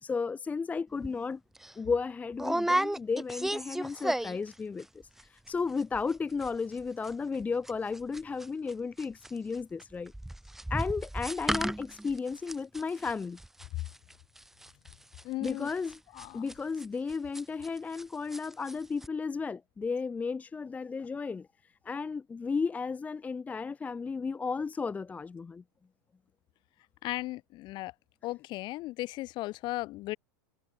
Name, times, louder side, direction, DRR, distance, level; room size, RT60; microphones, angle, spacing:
voice 1, 0.0-1.4 1.8-4.9 5.2-10.1 10.7-13.4 15.4-16.0 16.3-21.5 21.8-25.6, left 5 dB, 15° left, 0.7 m, -34 dB
sound 1, 1.0-1.2 1.6-1.7 2.4-4.5 4.8-5.2 5.5-5.6 5.8-6.1 6.4-18.0 18.3-18.7 19.0-19.1, right 1 dB, 5° right, 1.0 m, -34 dB
voice 2, 15.2-15.7 16.2-16.4 27.0-27.9 28.2-30.2, left 18 dB, 45° left, 3.0 m, -36 dB
hypercardioid pair, 120°, 11 cm